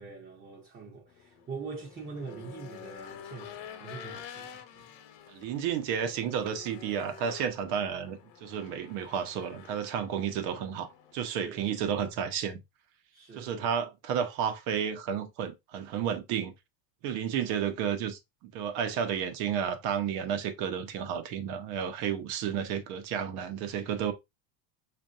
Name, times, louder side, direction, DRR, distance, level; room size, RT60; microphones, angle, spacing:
voice 1, 0.0-4.9 8.6-8.7 11.2-11.7 13.1-13.7, right 4 dB, 20° right, 0.7 m, -44 dB
Race car auto racing / Engine, 1.1-11.2, left 8 dB, 60° left, 0.9 m, -48 dB
voice 2, 5.3-12.6 13.4-16.5 17.0-24.1, right 8 dB, 65° right, 0.9 m, -32 dB
5.3 x 2.6 x 2.4 m
cardioid pair, 150°, 48 cm